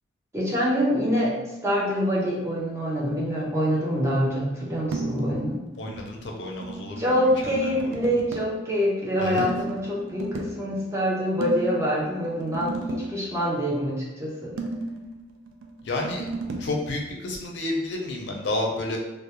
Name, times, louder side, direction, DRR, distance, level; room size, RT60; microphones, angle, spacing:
voice 1, 0.3-1.3 1.6-5.6 7.0-14.5, equal, 15° right, -5 dB, 0.4 m, -25 dB
sound 1, 4.9-5.4 5.7-8.6 9.4-10.6 11.4-13.2 14.6-16.8, right 2 dB, 80° right, 0.3 m, -34 dB
voice 2, 5.8-7.1 7.6-7.9 9.2-9.5 15.8-16.2 16.6-19.0, left 2 dB, 55° left, 0 dB, 0.4 m, -30 dB
2.2 x 2.1 x 2.8 m, 1.1 s
head